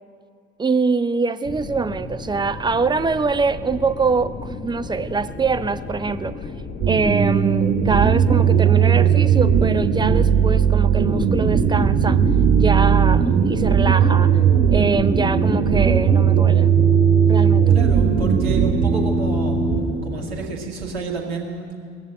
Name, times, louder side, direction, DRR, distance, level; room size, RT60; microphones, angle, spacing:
voice 1, 0.6-6.5 6.9-12.2 12.6-14.4 14.7-16.7 17.3-17.8, right 4 dB, 15° right, 12 dB, 0.6 m, -24 dB
sound 1, 1.4-20.4, left 3 dB, 30° left, 1.6 m, -34 dB
sound 2, 6.8-19.8, right 7 dB, 65° right, 2.8 m, -17 dB
voice 2, 17.7-19.6 20.0-21.7, right 4 dB, 85° right, -2 dB, 2.0 m, -29 dB
20.0 x 7.3 x 9.0 m, 2.2 s
hypercardioid pair, 60°, 30 cm